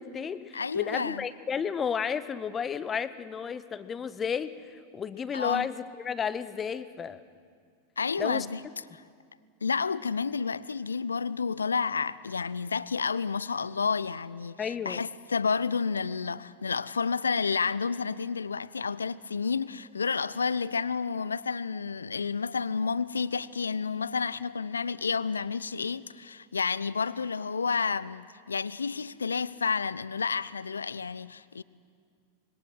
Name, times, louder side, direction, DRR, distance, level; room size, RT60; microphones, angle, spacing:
voice 1, 0.0-7.2 8.2-8.5 14.6-15.0, left 7 dB, 20° left, 0.8 m, -32 dB
voice 2, 0.5-1.2 5.3-5.7 8.0-8.6 8.9-9.0 9.6-31.6, left 5 dB, 75° left, 0.5 m, -30 dB
25.5 x 22.0 x 6.2 m
figure-of-eight pair, 90°, 0 cm